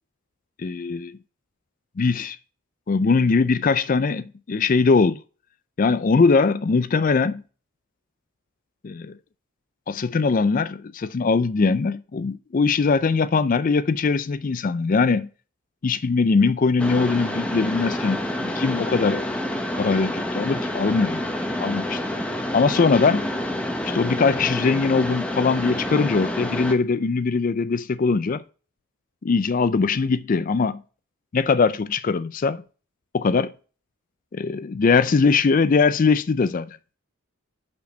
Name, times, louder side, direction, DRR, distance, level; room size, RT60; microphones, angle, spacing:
voice 1, 0.6-1.1 2.0-2.4 2.9-5.2 5.8-7.4 8.8-9.2 9.9-15.3 15.8-19.3 19.8-21.2 21.6-22.0 22.5-23.3 23.8-28.4 29.2-30.8 31.3-32.6 33.1-33.5 34.3-36.8, left 4 dB, 40° left, 0.4 m, -21 dB
Mechanisms, 16.8-26.8, left 1 dB, 5° left, 1.0 m, -28 dB
6.2 x 5.8 x 6.1 m
head